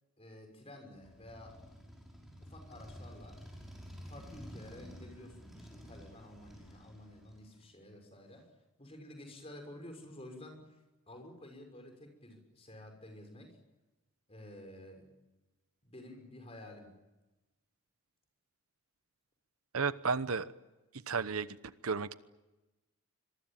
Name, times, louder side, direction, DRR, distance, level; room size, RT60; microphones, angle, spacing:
voice 1, 0.2-1.6 2.4-3.4 4.0-8.5 8.8-13.6 14.3-15.1 15.8-17.0, left 1 dB, 25° left, 5 dB, 6.2 m, -51 dB
Motorcycle, 1.0-7.7, equal, ahead, 5.7 m, -51 dB
voice 2, 19.7-20.5 21.1-21.6 21.8-22.1, right 5 dB, 75° right, 14 dB, 1.0 m, -32 dB
26.0 x 23.0 x 8.9 m, 1.1 s
head